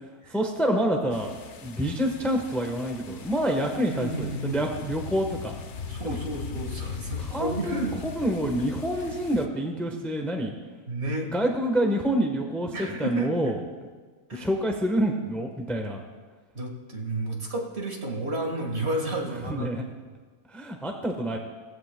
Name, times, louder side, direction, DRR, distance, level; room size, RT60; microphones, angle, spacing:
voice 1, 0.3-1.3 1.6-5.6 6.0-6.2 7.2-7.8 8.2-10.5 11.3-13.6 14.3-16.0 19.4-19.8 20.5-21.4, equal, ahead, 2 dB, 0.8 m, -27 dB
sound 1, 1.1-9.5, left 6 dB, 55° left, 1.0 m, -39 dB
voice 2, 3.9-4.7 5.9-8.0 10.9-11.3 12.7-13.3 14.3-14.5 16.5-19.9, right 1 dB, 45° right, 2 dB, 1.8 m, -31 dB
17.5 x 15.0 x 2.2 m, 1.4 s
omnidirectional pair, 1.7 m